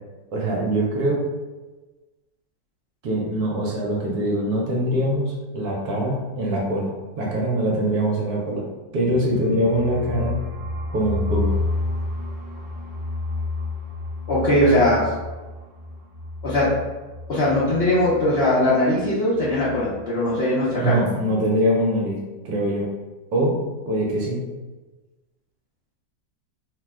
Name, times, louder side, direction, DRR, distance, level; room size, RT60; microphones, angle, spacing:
voice 1, 0.3-1.2 3.0-8.7 8.9-10.4 10.9-11.5 20.8-22.2 22.4-22.9 23.3-23.5 23.9-24.4, right 1 dB, 70° right, -2 dB, 1.0 m, -23 dB
sound 1, 9.1-18.7 19.0-19.1 19.4-19.8, left 2 dB, 50° right, 0.7 m, -31 dB
voice 2, 14.3-15.0 16.4-16.7 17.3-21.0, left 1 dB, 75° left, -8 dB, 0.5 m, -20 dB
2.9 x 2.1 x 3.4 m, 1.2 s
omnidirectional pair, 1.9 m